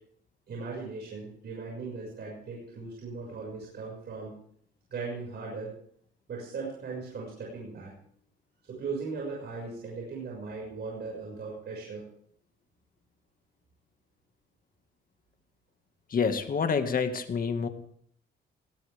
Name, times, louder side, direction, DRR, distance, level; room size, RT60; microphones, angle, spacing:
voice 1, 0.5-4.3 4.9-5.7 6.3-7.9 8.7-12.0, right 4 dB, 55° right, -2 dB, 6.3 m, -38 dB
voice 2, 16.1-17.7, left 6 dB, 45° left, 7 dB, 2.1 m, -27 dB
18.5 x 18.0 x 3.6 m, 0.64 s
cardioid pair, 90°, 20 cm